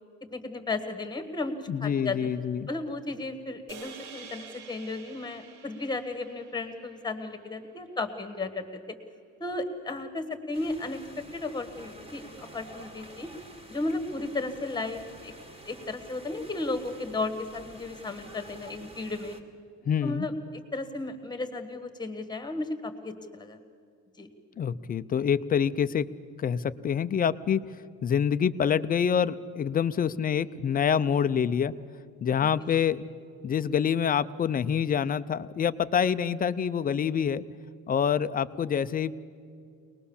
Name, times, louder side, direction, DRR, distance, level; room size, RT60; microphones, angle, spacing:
voice 1, 0.3-2.2 2.7-8.7 9.4-11.0 11.3-12.2 12.5-13.3 13.7-15.3 15.6-19.4 20.0-20.3 20.7-23.6 24.2-24.3, left 2 dB, 15° left, 9 dB, 1.5 m, -34 dB
voice 2, 1.7-2.7 19.9-20.3 24.6-26.1 26.4-27.6 28.0-31.7 32.2-33.1 33.4-37.4 37.9-39.1, left 8 dB, 30° left, 13 dB, 0.4 m, -26 dB
sound 1, 3.7-8.1, right 6 dB, 80° right, 1.7 m, -49 dB
sound 2, 10.5-19.4, right 1 dB, 20° right, 2.0 m, -49 dB
23.5 x 20.0 x 7.1 m, 2.3 s
cardioid pair, 160°, 31 cm